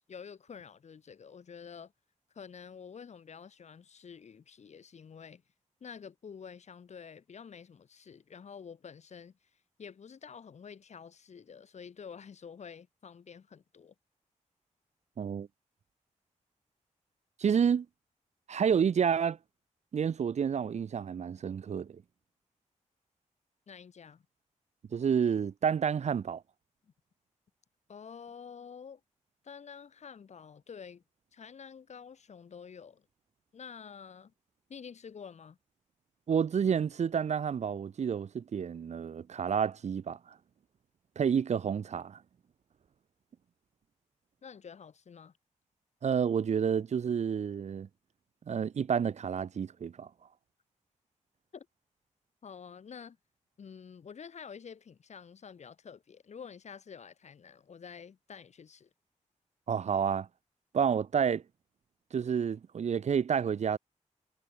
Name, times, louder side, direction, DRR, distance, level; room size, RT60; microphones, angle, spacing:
voice 1, 0.1-1.9 2.3-5.4 5.8-9.3 9.8-13.9 23.7-24.2 27.9-29.0 29.4-31.0 31.3-33.1 33.5-34.3 34.7-35.6 44.4-45.3 51.5-51.7 52.4-53.2 53.6-58.9, left 6 dB, 60° left, 5.4 m, -48 dB
voice 2, 15.2-15.5 17.4-17.9 18.5-19.4 19.9-22.0 24.9-26.4 36.3-40.2 41.2-42.2 46.0-47.9 48.5-50.1 59.7-60.3 60.7-61.4 62.1-63.8, right 7 dB, 65° right, 1.1 m, -29 dB
wide cardioid pair, 135°, 13 cm